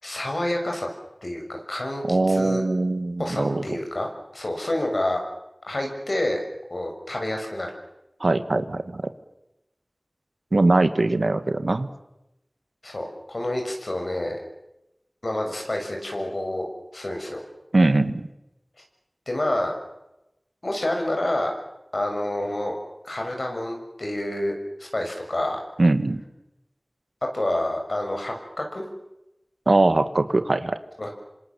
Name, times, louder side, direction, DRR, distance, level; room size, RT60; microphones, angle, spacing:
voice 1, 0.0-0.9 1.2-2.6 3.2-4.1 4.3-5.2 5.7-6.4 6.7-7.7 12.8-14.4 15.2-16.7 16.9-17.4 19.3-19.7 20.6-21.5 21.9-22.8 23.0-25.6 27.3-28.8 31.0-31.1, left 1 dB, 70° left, 2 dB, 7.0 m, -28 dB
voice 2, 2.1-3.8 8.2-9.0 10.5-11.9 17.7-18.3 25.8-26.2 29.7-30.8, right 2 dB, 80° right, 11 dB, 1.8 m, -21 dB
28.0 x 26.0 x 7.3 m, 0.91 s
wide cardioid pair, 45°, 0 cm